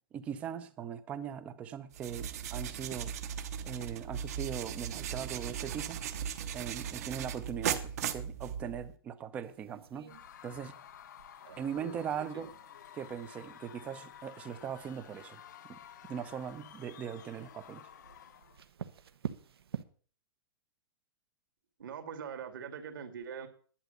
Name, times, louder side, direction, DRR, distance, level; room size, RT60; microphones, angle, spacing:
voice 1, 0.1-3.1 3.6-6.1 6.5-10.2 10.4-10.7 11.6-12.5 12.9-15.4 15.7-15.8 16.1-17.9, right 8 dB, 10° right, 0.5 m, -40 dB
sound 1, 1.9-8.9, right 8 dB, 40° right, 0.9 m, -37 dB
sound 2, 9.4-19.8, right 8 dB, 80° right, 1.1 m, -49 dB
Screaming / Cheering / Crowd, 10.1-18.6, left 10 dB, 50° left, 0.7 m, -52 dB
voice 2, 21.8-23.5, right 7 dB, 60° right, 2.3 m, -42 dB
11.5 x 7.8 x 6.6 m
hypercardioid pair, 170°, 13 cm